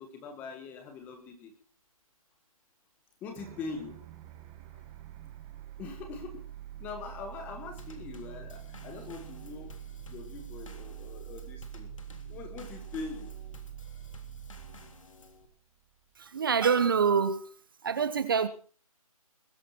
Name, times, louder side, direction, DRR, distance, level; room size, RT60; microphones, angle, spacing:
voice 1, 0.0-1.5 3.2-4.0 5.8-6.5 6.8-9.7 10.1-11.9 12.3-13.3, left 4 dB, 10° left, 1.6 m, -42 dB
sound 1, 3.4-16.1, right 13 dB, 15° right, 1.4 m, -45 dB
Drum kit / Snare drum / Bass drum, 7.8-15.5, left 4 dB, 60° left, 3.2 m, -53 dB
voice 2, 16.2-17.5 17.8-18.5, right 6 dB, 35° right, 1.0 m, -26 dB
21.5 x 11.0 x 4.5 m
hypercardioid pair, 165°, 19 cm